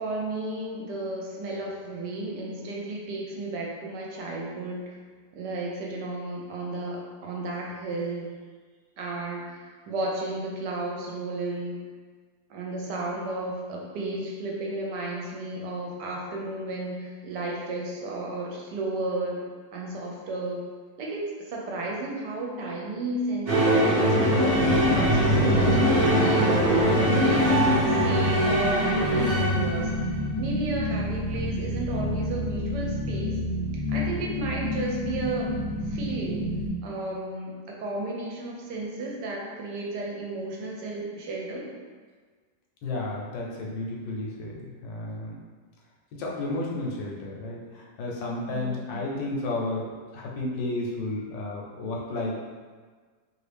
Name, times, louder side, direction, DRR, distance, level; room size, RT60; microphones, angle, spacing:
voice 1, 0.0-5.0 5.3-8.4 9.0-11.8 12.5-19.5 19.7-20.7 21.0-26.6 26.9-27.5 27.9-29.9 30.4-33.4 33.9-35.6 35.8-36.5 36.8-41.7 48.5-49.0, right 2 dB, 75° right, -2 dB, 1.1 m, -33 dB
sound 1, 23.5-30.0, equal, 45° right, 0.8 m, -22 dB
sound 2, 24.5-36.7, equal, 50° left, 0.3 m, -30 dB
voice 2, 42.8-45.4 46.2-52.4, left 2 dB, 80° left, -3 dB, 1.4 m, -32 dB
3.0 x 2.6 x 3.3 m, 1.5 s
omnidirectional pair, 2.0 m